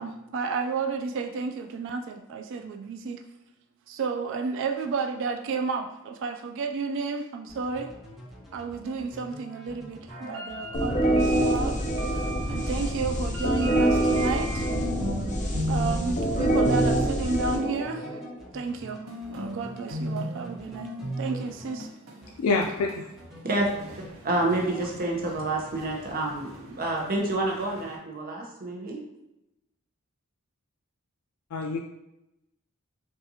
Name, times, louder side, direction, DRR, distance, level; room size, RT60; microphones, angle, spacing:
voice 1, 0.0-3.2 3.9-7.9 8.5-11.8 12.1-14.7 15.7-18.2 18.5-19.0 19.3-20.9 21.2-21.9, right 4 dB, 60° right, 5 dB, 0.3 m, -31 dB
sound 1, 7.5-21.8 22.2-22.9 23.2-24.1 24.4-24.9, equal, ahead, 0.8 m, -46 dB
sound 2, 10.1-15.3 15.5-16.1 16.4-17.1 19.1-28.0, right 1 dB, 75° right, 0.8 m, -36 dB
sound 3, 10.7-18.4, right 1 dB, 35° left, 0.6 m, -26 dB
voice 2, 22.4-23.1 31.5-31.8, left 3 dB, 80° left, 0 dB, 0.4 m, -26 dB
voice 3, 24.2-29.0, right 2 dB, 40° right, -1 dB, 0.7 m, -28 dB
5.3 x 2.5 x 2.7 m, 0.90 s
head